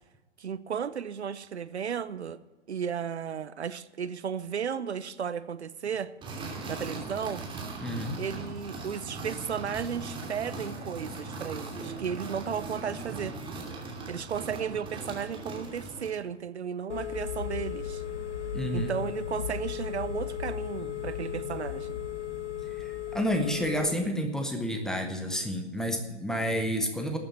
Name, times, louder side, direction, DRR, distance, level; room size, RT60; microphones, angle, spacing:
voice 1, 0.4-2.4 2.7-6.1 6.7-7.4 8.2-13.4 14.1-18.0 18.7-22.0, right 7 dB, 70° right, 16 dB, 0.8 m, -34 dB
sound 1, 6.2-16.2, right 3 dB, 15° right, 2.8 m, -39 dB
voice 2, 7.8-8.2 18.5-18.9 22.7-27.2, equal, ahead, 5 dB, 1.2 m, -30 dB
Telephone, 16.9-23.9, left 9 dB, 75° left, 1.5 m, -35 dB
13.0 x 8.8 x 8.6 m, 1.2 s
figure-of-eight pair, 120°, 35 cm